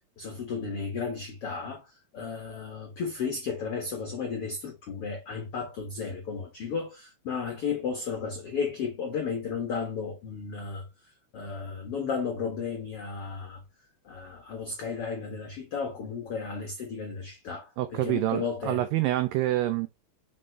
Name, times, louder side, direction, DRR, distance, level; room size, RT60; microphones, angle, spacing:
voice 1, 0.2-13.6 14.0-18.8, left 5 dB, 85° left, 1.2 m, -34 dB
voice 2, 17.8-19.9, right 14 dB, 85° right, 2.0 m, -27 dB
5.4 x 5.2 x 3.3 m
omnidirectional pair, 4.6 m